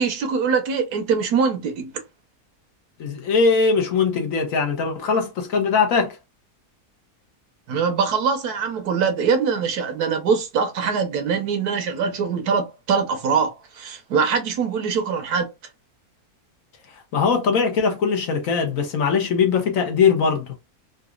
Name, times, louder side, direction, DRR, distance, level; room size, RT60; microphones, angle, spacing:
voice 1, 0.0-1.9 7.7-15.5, right 6 dB, 75° right, 1.3 m, -23 dB
voice 2, 3.0-6.2 16.9-20.6, left 5 dB, 65° left, 1.2 m, -21 dB
3.9 x 2.5 x 2.4 m
omnidirectional pair, 1.6 m